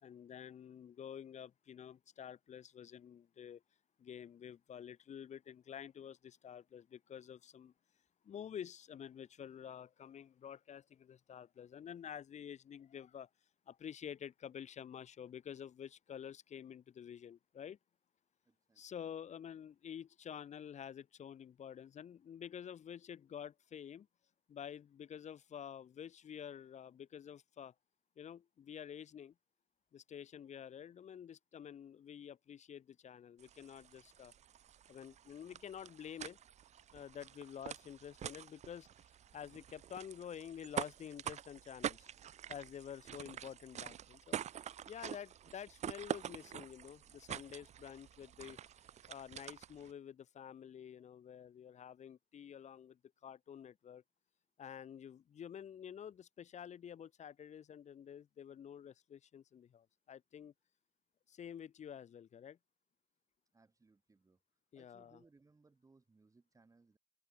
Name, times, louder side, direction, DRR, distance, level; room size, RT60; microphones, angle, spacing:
voice 1, 0.0-3.6 4.0-7.7 8.2-13.3 13.7-17.8 18.8-24.1 24.5-27.7 28.2-29.3 29.9-34.3 34.9-36.4 36.9-38.9 39.3-42.1 42.5-44.4 44.9-48.6 49.1-54.0 54.6-60.5 61.3-62.6 64.7-65.2, left 8 dB, 45° left, 1.2 m, -49 dB
voice 2, 18.4-18.8 63.5-64.4 64.7-67.0, right 3 dB, 20° right, 4.3 m, -68 dB
sound 1, 33.4-49.9, right 10 dB, 45° right, 0.6 m, -47 dB
open air
cardioid pair, 110°, 17 cm